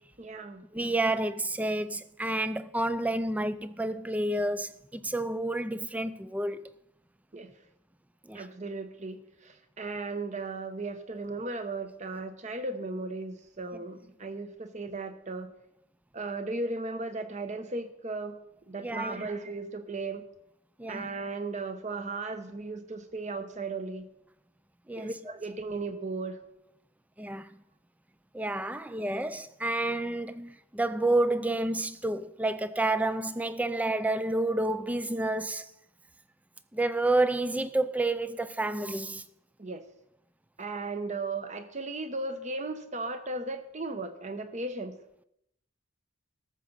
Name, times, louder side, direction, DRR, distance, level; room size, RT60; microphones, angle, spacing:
voice 1, 0.2-0.6 7.3-7.5 8.3-15.5 16.1-18.3 18.7-20.2 20.9-24.0 25.0-26.4 39.6-39.8 40.6-44.9, right 3 dB, 35° right, 0.9 m, -36 dB
voice 2, 0.7-6.7 8.3-8.5 18.8-19.3 20.8-21.1 24.9-25.1 27.2-27.5 28.3-35.7 36.7-39.2, right 2 dB, 5° right, 0.3 m, -29 dB
13.0 x 7.1 x 5.5 m
head